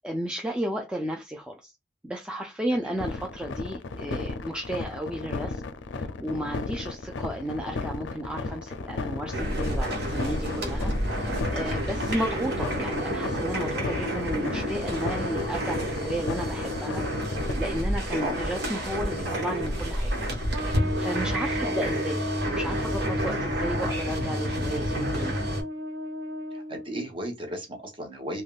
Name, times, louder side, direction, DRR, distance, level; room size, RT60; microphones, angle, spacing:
voice 1, 0.0-1.7 2.0-5.6 5.9-17.0 17.5-20.1 20.5-25.3, right 1 dB, 5° right, 0.3 m, -33 dB
sound 1, 3.0-17.5, left 3 dB, 75° left, 0.4 m, -34 dB
sound 2, 9.3-25.6, equal, 60° right, 1.1 m, -30 dB
Trumpet, 20.5-27.0, left 1 dB, 75° right, 0.4 m, -34 dB
voice 2, 26.5-28.4, right 1 dB, 30° right, 0.9 m, -35 dB
3.4 x 2.2 x 2.3 m
head